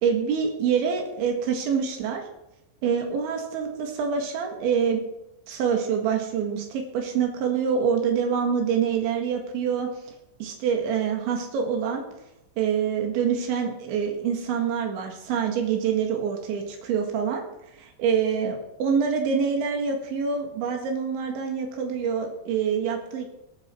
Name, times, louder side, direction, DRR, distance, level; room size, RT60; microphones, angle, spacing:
voice 1, 0.0-2.2 2.8-5.0 5.5-9.9 10.4-12.1 12.6-17.4 17.8-23.3, right 6 dB, 85° right, 3 dB, 4.1 m, -26 dB
20.5 x 10.0 x 4.5 m, 0.89 s
omnidirectional pair, 5.2 m